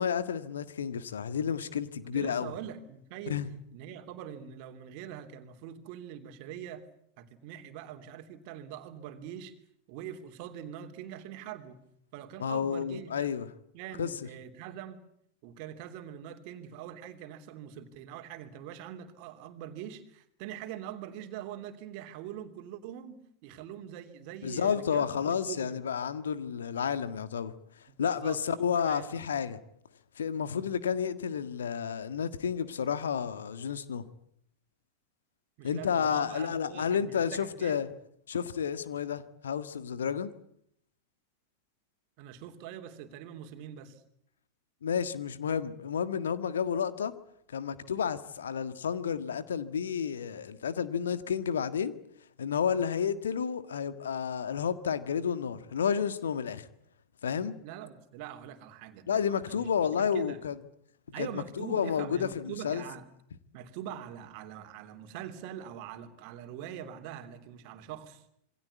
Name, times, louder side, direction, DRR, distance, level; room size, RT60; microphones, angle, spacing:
voice 1, 0.0-2.5 3.3-3.5 12.4-13.5 14.0-14.1 24.4-27.5 28.0-29.6 30.2-34.0 35.6-37.9 38.3-40.3 44.8-47.1 47.5-51.9 52.4-56.7 57.2-57.5 59.1-60.5 61.2-62.8, left 7 dB, 65° left, 1.6 m, -31 dB
voice 2, 2.0-3.4 3.7-6.9 7.2-9.5 9.9-11.8 12.1-13.3 13.7-15.0 15.4-25.1 25.4-25.8 27.9-28.4 28.7-29.2 35.6-37.8 42.2-44.0 57.6-60.4 61.1-63.1 63.5-68.3, right 10 dB, 45° right, 3.2 m, -43 dB
27.5 x 23.5 x 8.4 m
figure-of-eight pair, 90°, 0 cm